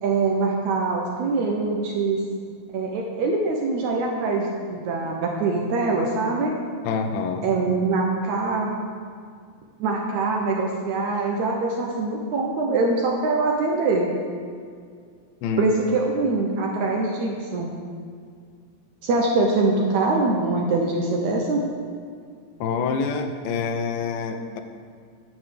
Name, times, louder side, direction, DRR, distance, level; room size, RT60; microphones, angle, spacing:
voice 1, 0.0-2.2 2.7-6.5 7.4-8.7 9.8-14.1 15.6-17.7 19.0-21.6, right 3 dB, 75° right, 0 dB, 1.8 m, -23 dB
voice 2, 6.8-7.5 15.4-15.7 22.6-24.6, left 5 dB, 85° left, 7 dB, 2.5 m, -26 dB
9.4 x 5.0 x 7.5 m, 2.2 s
omnidirectional pair, 4.1 m